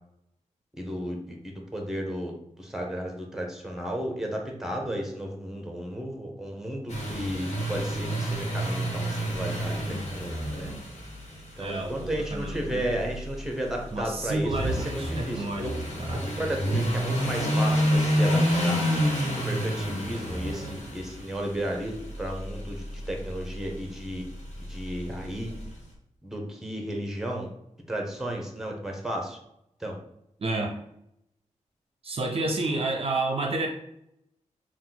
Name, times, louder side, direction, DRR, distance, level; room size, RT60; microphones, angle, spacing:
voice 1, 0.8-10.7 11.6-15.7 16.2-18.9 19.4-24.2 24.7-25.5 26.2-27.5 27.9-29.4 29.8-30.0, equal, 5° right, 2 dB, 0.8 m, -33 dB
sound 1, 6.9-25.7, equal, 60° left, 1.3 m, -29 dB
voice 2, 11.6-12.9 13.9-15.7 16.0-16.4 30.4-30.8 32.0-33.7, right 2 dB, 50° right, 2 dB, 0.5 m, -30 dB
4.0 x 2.4 x 3.9 m, 0.77 s
wide cardioid pair, 90°, 13 cm